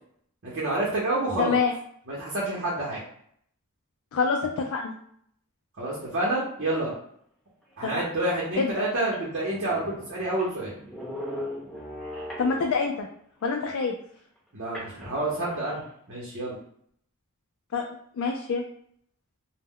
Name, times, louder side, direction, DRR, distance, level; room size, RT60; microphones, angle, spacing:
voice 1, 0.4-1.6 2.1-3.0 5.8-6.9 7.8-10.7 14.5-15.8 16.1-16.6, right 1 dB, 50° right, -5 dB, 0.7 m, -28 dB
voice 2, 1.4-1.7 4.1-4.9 7.8-8.0 8.6-8.7 12.4-13.1 13.4-13.9 17.7-17.9 18.2-18.6, left 5 dB, 65° left, 2 dB, 0.3 m, -26 dB
sound 1, 9.0-13.1 14.7-15.8, left 1 dB, 5° left, 0.6 m, -39 dB
2.1 x 2.1 x 3.5 m, 0.67 s
head